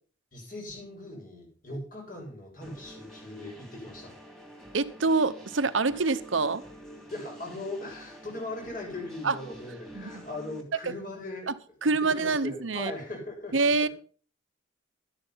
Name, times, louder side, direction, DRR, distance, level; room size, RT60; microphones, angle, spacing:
voice 1, 0.3-4.1 5.9-6.0 7.1-11.5 11.8-13.9, left 2 dB, 45° left, 6.8 m, -39 dB
sound 1, 2.6-10.6, right 1 dB, ahead, 3.1 m, -48 dB
voice 2, 4.7-6.6 9.2-9.4 9.9-10.2 11.5-11.6 11.8-12.9 13.5-13.9, right 3 dB, 80° right, 1.0 m, -26 dB
13.0 x 10.0 x 5.7 m
head